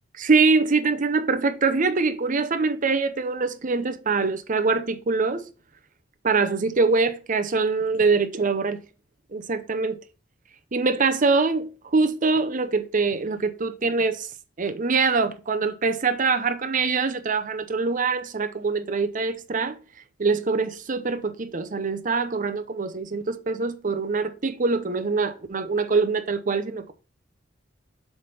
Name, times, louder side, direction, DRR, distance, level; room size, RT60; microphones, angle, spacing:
voice 1, 0.2-5.5 6.2-8.8 9.3-10.0 10.7-14.3 14.6-19.8 20.2-26.9, right 4 dB, 45° right, 0.7 m, -24 dB
7.3 x 3.4 x 5.6 m
head